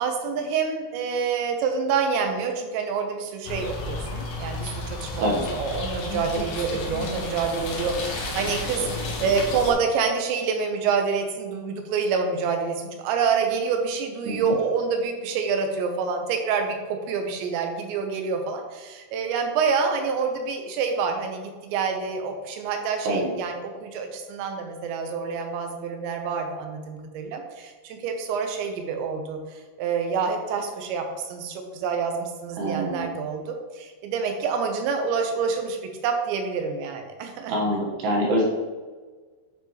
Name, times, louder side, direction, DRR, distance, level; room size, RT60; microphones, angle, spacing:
voice 1, 0.0-5.3 5.5-29.4 29.8-35.8 36.0-37.6, right 5 dB, 90° right, 4 dB, 3.1 m, -27 dB
sound 1, 3.5-9.7, left 2 dB, 80° left, 1.8 m, -32 dB
voice 2, 5.2-5.5 14.3-14.6 23.0-23.3 32.6-33.1 37.5-38.4, right 1 dB, 75° right, -3 dB, 3.3 m, -25 dB
10.0 x 4.6 x 3.0 m, 1.4 s
omnidirectional pair, 5.1 m